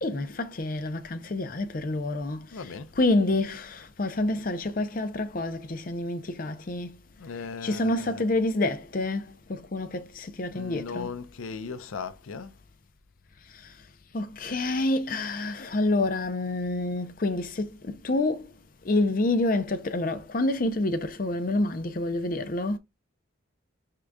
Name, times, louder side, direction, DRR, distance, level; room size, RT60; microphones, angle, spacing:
voice 1, 0.0-6.9 7.6-11.2 14.1-18.5 18.8-22.8, left 2 dB, 45° left, 0.6 m, -28 dB
voice 2, 2.5-2.9 7.2-8.3 10.5-12.5, left 5 dB, 85° left, 0.5 m, -37 dB
4.8 x 3.7 x 2.2 m
head